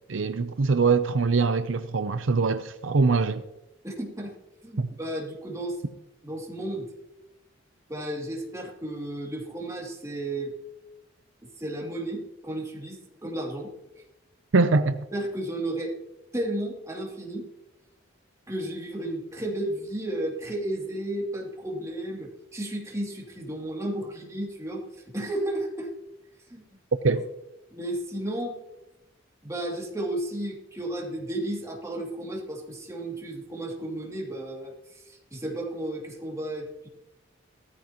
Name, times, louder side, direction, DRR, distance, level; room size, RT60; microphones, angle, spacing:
voice 1, 0.1-3.4 4.8-4.9 14.5-15.0 27.0-27.2, right 4 dB, 75° right, 0.6 m, -23 dB
voice 2, 3.8-4.3 4.6-5.8 6.2-6.9 7.9-10.5 11.6-13.7 15.1-15.9 16.3-17.5 18.5-24.8 25.1-25.9 26.5-26.6 27.7-28.5 29.4-36.9, right 1 dB, 15° right, 2.8 m, -33 dB
17.0 x 14.5 x 3.0 m
head